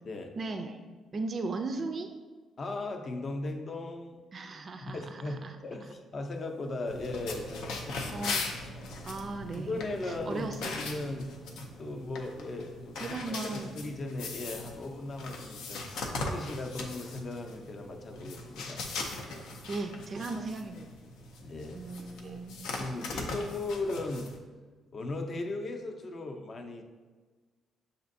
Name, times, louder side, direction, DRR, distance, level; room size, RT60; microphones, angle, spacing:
voice 1, 0.4-0.8 1.1-2.1 4.3-5.6 8.1-8.5 9.0-10.6 13.0-13.7 19.7-20.9 21.7-22.6 23.1-23.2, right 3 dB, 45° right, 6 dB, 0.3 m, -37 dB
voice 2, 2.6-4.2 4.9-8.3 9.6-11.3 11.8-15.8 16.2-18.8 21.4-21.8 22.8-24.3 24.9-26.8, left 2 dB, 45° left, 4 dB, 0.5 m, -37 dB
sound 1, 6.9-24.4, left 3 dB, 90° left, 0.5 m, -40 dB
6.5 x 2.6 x 2.6 m, 1.4 s
cardioid pair, 90°, 0 cm